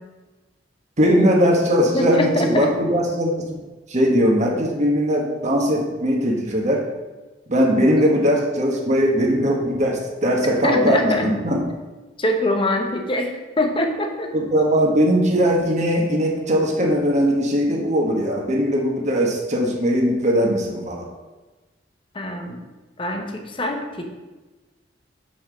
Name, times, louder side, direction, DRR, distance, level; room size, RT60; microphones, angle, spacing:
voice 1, 1.0-3.6 3.9-6.9 7.5-11.6 14.3-21.1, equal, 40° right, -1 dB, 1.5 m, -20 dB
voice 2, 1.9-2.7 10.6-11.3 12.2-14.3 22.1-22.6 23.0-24.1, left 1 dB, 30° left, 3 dB, 1.0 m, -23 dB
5.7 x 5.6 x 6.8 m, 1.2 s
head